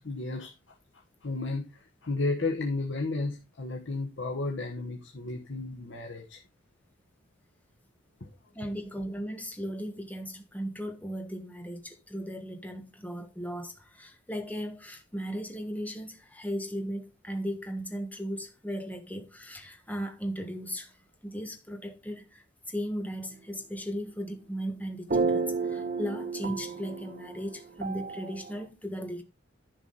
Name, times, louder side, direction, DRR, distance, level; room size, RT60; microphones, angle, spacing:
voice 1, 0.0-6.4 8.2-8.3, left 3 dB, 75° left, 1.2 m, -33 dB
voice 2, 8.5-21.0 21.2-29.2, equal, 10° left, 1.3 m, -37 dB
sound 1, 25.1-28.7, right 4 dB, 45° right, 0.8 m, -31 dB
10.5 x 5.9 x 4.0 m
head